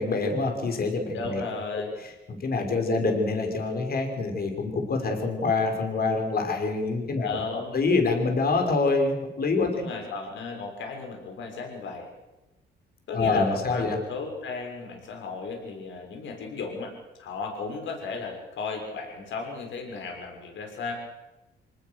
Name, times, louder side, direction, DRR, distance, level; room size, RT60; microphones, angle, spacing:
voice 1, 0.0-1.4 1.7-1.8 2.3-7.4 7.7-9.9 13.1-14.0, left 3 dB, 50° left, 4 dB, 5.6 m, -26 dB
voice 2, 1.1-1.9 7.2-7.8 9.7-12.1 13.1-16.9 17.2-20.9, left 4 dB, 70° left, 3 dB, 6.2 m, -35 dB
26.5 x 19.5 x 6.6 m, 1.0 s
cardioid pair, 90°, 20 cm